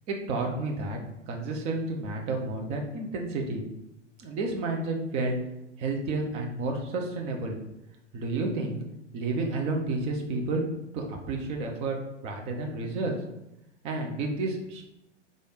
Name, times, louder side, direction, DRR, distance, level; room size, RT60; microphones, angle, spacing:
voice 1, 0.1-1.0 1.3-3.6 4.2-5.4 5.8-7.6 8.1-8.8 9.1-10.6 10.9-12.0 12.2-13.2 13.8-14.8, right 3 dB, 20° right, 2 dB, 0.4 m, -30 dB
3.2 x 2.4 x 4.0 m, 0.88 s
figure-of-eight pair, 105°, 36 cm